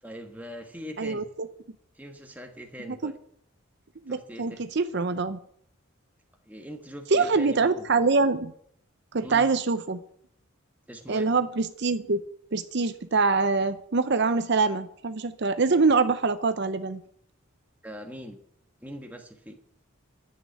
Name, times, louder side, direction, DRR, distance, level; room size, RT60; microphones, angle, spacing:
voice 1, 0.0-1.3 1.9-3.1 4.1-4.7 6.5-8.0 9.2-9.5 10.9-11.3 17.8-18.4 18.8-19.6, equal, 10° right, 3 dB, 1.3 m, -41 dB
voice 2, 4.1-5.4 7.1-8.5 9.1-10.0 11.1-12.2 12.5-17.0, right 4 dB, 55° right, 12 dB, 0.6 m, -24 dB
11.0 x 8.7 x 9.4 m, 0.68 s
head